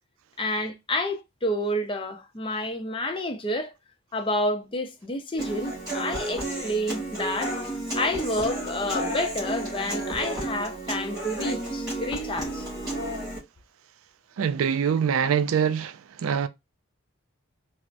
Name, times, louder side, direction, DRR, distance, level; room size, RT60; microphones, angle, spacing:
voice 1, 0.4-3.7 4.1-7.6 8.0-12.7, left 1 dB, 25° left, 0.4 m, -29 dB
Human voice / Acoustic guitar, 5.4-13.4, right 1 dB, 20° right, 2.3 m, -32 dB
voice 2, 14.4-16.5, right 7 dB, 75° right, 0.3 m, -24 dB
4.5 x 2.0 x 2.5 m
head